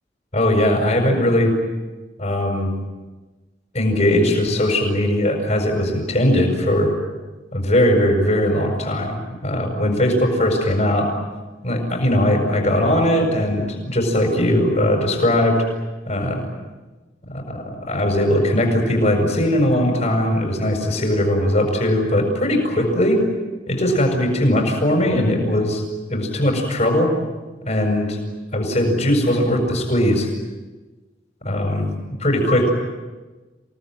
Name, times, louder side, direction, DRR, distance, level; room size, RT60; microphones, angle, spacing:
voice 1, 0.3-1.5 2.2-2.7 3.7-6.9 7.5-11.1 11.6-15.6 16.1-16.5 17.3-23.2 23.7-25.8 26.1-27.1 27.6-28.2 28.5-30.3 31.4-31.8 32.2-32.7, left 1 dB, 40° left, 0 dB, 6.7 m, -19 dB
29.0 x 19.0 x 9.4 m, 1.2 s
head